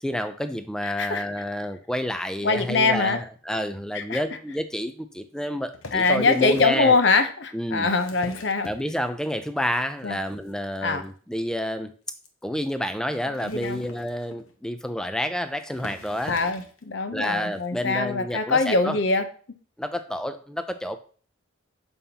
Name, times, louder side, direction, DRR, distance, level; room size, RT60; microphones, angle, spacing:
voice 1, 0.0-7.0 7.5-7.9 8.6-11.9 12.4-16.3 17.1-19.0 19.8-21.0, equal, 5° left, 0.4 m, -29 dB
voice 2, 0.8-1.3 2.4-3.2 3.9-4.2 5.9-8.7 10.0-10.2 10.8-11.0 13.4-13.8 16.3-19.2, left 3 dB, 55° left, 0.7 m, -23 dB
sound 1, 5.7-6.8 7.7-9.2 9.6-10.0 10.3-10.5 10.7-10.8 11.0-11.1 11.5-11.6 12.2-12.3 13.2-14.6 15.3-15.4 15.7-16.8 17.6-17.7, left 3 dB, 85° left, 1.0 m, -43 dB
6.9 x 5.6 x 2.8 m
head